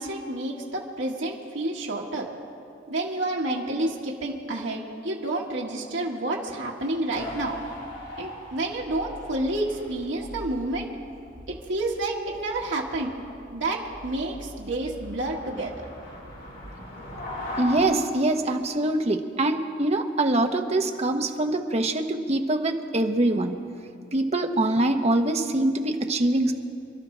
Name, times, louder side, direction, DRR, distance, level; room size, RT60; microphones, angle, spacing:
voice 1, 0.0-2.3 2.9-7.6 8.2-10.9 11.7-13.1 13.5-15.7, right 2 dB, 75° right, -2 dB, 1.7 m, -29 dB
sound 1, 7.1-17.8, equal, 80° left, 4.7 m, -40 dB
voice 2, 17.6-23.6 24.1-26.5, right 2 dB, 35° right, 4 dB, 0.9 m, -24 dB
27.5 x 12.0 x 3.3 m, 2.4 s
head